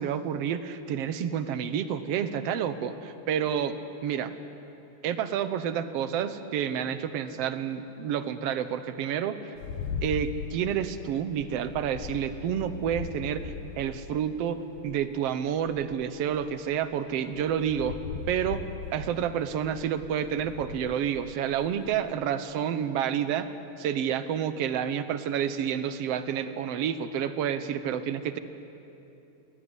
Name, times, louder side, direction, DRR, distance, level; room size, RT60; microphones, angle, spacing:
voice 1, 0.0-4.4 5.0-9.5 10.0-18.0 18.3-18.6 18.9-28.4, right 8 dB, 70° right, 11 dB, 1.5 m, -29 dB
sound 1, 9.6-15.1 15.6-22.1, left 5 dB, 85° left, 3.0 m, -40 dB
29.0 x 20.5 x 9.9 m, 2.9 s
omnidirectional pair, 4.1 m